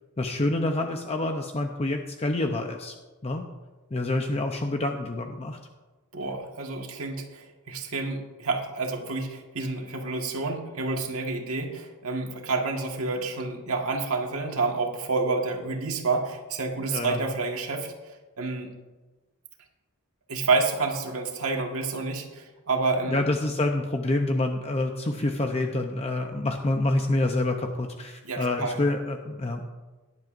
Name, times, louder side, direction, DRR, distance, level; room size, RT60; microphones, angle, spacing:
voice 1, 0.2-2.9 3.2-3.5 3.9-5.6 16.9-17.2 23.1-29.7, left 2 dB, 30° left, 4 dB, 0.7 m, -27 dB
voice 2, 6.1-18.7 20.3-23.3 28.2-28.8, right 3 dB, 70° right, 2 dB, 1.7 m, -29 dB
17.5 x 10.5 x 2.6 m, 1.2 s
head